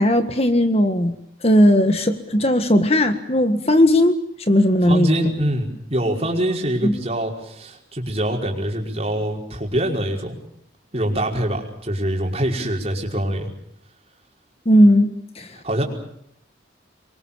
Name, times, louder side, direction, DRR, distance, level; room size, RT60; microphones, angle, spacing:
voice 1, 0.0-4.2 4.5-5.1 6.8-7.0 14.7-15.5, equal, 35° left, 8 dB, 1.6 m, -17 dB
voice 2, 4.9-10.4 10.9-13.5 15.6-15.8, right 1 dB, 35° right, 1 dB, 5.2 m, -24 dB
27.5 x 23.0 x 7.2 m, 0.73 s
head